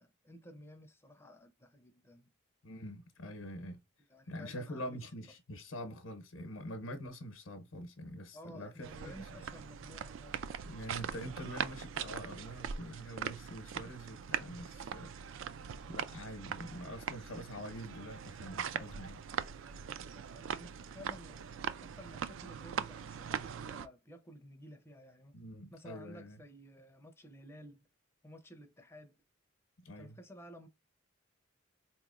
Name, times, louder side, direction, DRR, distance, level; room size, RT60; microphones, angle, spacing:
voice 1, 0.0-2.3 4.1-5.0 8.3-10.4 20.1-25.4 25.7-27.9 28.2-29.2 30.0-30.7, equal, 10° left, 0.4 m, -53 dB
voice 2, 2.6-3.8 4.3-9.2 10.6-15.1 15.9-19.2 25.3-26.4 29.8-30.2, equal, 90° left, 0.8 m, -45 dB
sound 1, 8.8-23.9, right 7 dB, 70° right, 0.3 m, -41 dB
4.2 x 2.9 x 2.4 m
head